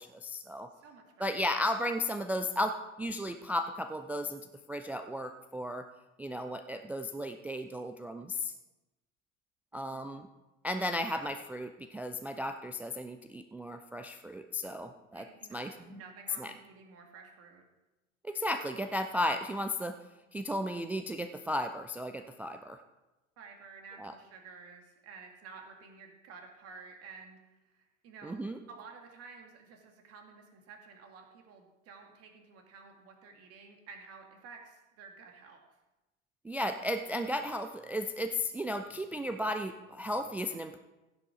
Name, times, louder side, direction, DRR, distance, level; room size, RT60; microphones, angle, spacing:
voice 1, 0.0-0.7 1.2-4.4 4.7-5.8 6.2-8.5 9.7-10.3 10.6-15.3 15.5-16.0 16.4-16.5 18.2-19.9 20.3-22.8 24.0-24.1 28.2-28.6 36.4-40.8, left 1 dB, 5° right, 6 dB, 0.3 m, -35 dB
voice 2, 0.7-1.5 9.7-10.1 15.1-17.6 23.4-28.3 28.7-35.6, right 5 dB, 40° right, 3 dB, 2.2 m, -52 dB
15.5 x 7.0 x 4.9 m, 1.0 s
figure-of-eight pair, 80°, 39 cm